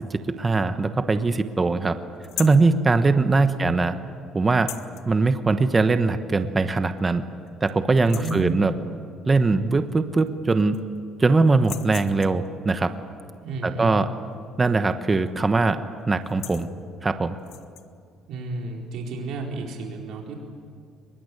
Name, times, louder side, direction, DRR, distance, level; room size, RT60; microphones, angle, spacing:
voice 1, 0.1-2.0 2.4-3.9 4.3-4.7 5.1-7.2 7.6-8.7 9.2-10.8 11.2-12.9 13.6-14.1 14.6-15.8 16.1-16.7 17.0-17.4, right 3 dB, 20° right, 9 dB, 1.1 m, -21 dB
sound 1, 2.2-2.7 4.5-5.1 6.4-6.5 7.0-7.1 7.5-7.7 8.0-8.5 9.9-10.0 10.3-11.0 11.5-12.5 14.8-15.1 15.4-15.7 16.1-16.7 17.4-17.9, left 13 dB, 85° left, 1.1 m, -38 dB
voice 2, 3.3-3.8 8.0-8.6 13.4-14.0 18.3-20.4, right 3 dB, 70° right, 0 dB, 4.5 m, -32 dB
24.0 x 21.5 x 9.8 m, 2.2 s
cardioid pair, 140°, 0 cm